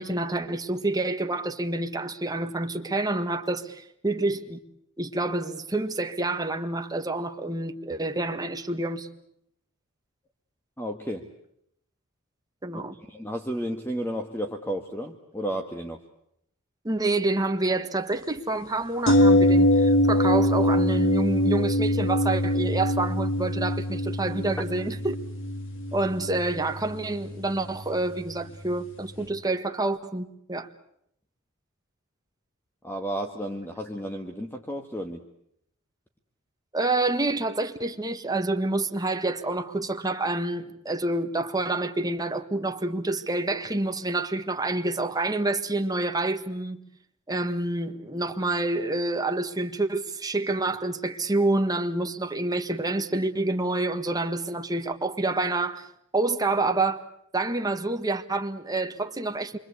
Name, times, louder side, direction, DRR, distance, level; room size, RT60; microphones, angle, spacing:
voice 1, 0.0-4.6 5.0-9.1 12.6-12.9 16.8-25.2 25.9-30.7 36.7-46.8 47.3-57.0 57.3-59.6, right 2 dB, 20° right, 1.6 m, -28 dB
voice 2, 10.8-11.3 12.7-16.0 32.8-35.2, equal, 10° left, 1.7 m, -33 dB
sound 1, 19.1-28.9 29.2-29.3, left 1 dB, 60° left, 2.5 m, -24 dB
28.0 x 24.5 x 8.3 m
head